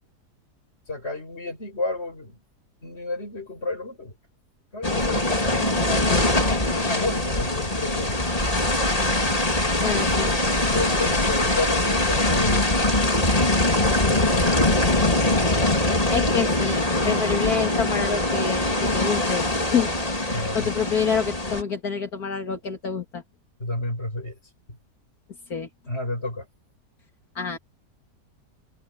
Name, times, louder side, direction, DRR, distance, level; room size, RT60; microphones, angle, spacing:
voice 1, 0.9-2.4 2.8-4.2 4.7-6.2 6.7-8.2 10.6-12.6 14.0-14.8 20.3-20.7 23.6-24.4 24.7-24.8 25.9-26.5, left 2 dB, 40° left, 6.7 m, -31 dB
sound 1, 4.8-21.6, left 2 dB, 20° left, 3.0 m, -22 dB
voice 2, 9.8-10.3 16.1-19.9 20.1-23.2 25.5-25.7 27.4-27.6, left 6 dB, 65° left, 2.7 m, -27 dB
omnidirectional pair, 1.7 m